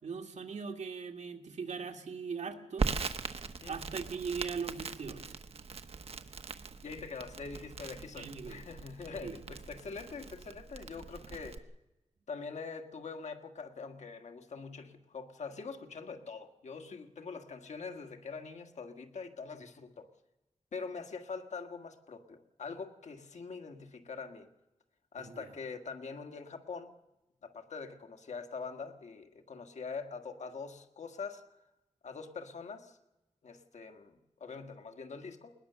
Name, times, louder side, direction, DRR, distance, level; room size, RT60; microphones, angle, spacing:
voice 1, 0.0-2.9 3.7-5.4 8.2-8.6 9.2-9.4 25.2-25.5, right 5 dB, 85° right, 1.9 m, -40 dB
Crackle, 2.8-11.6, right 4 dB, 60° right, 1.0 m, -40 dB
voice 2, 3.4-3.7 6.8-11.6 12.3-20.1 20.7-24.5 25.1-26.9 27.4-31.4 32.0-33.0 33.4-35.5, left 5 dB, 80° left, 1.7 m, -44 dB
20.5 x 20.0 x 6.8 m
wide cardioid pair, 150°, 12 cm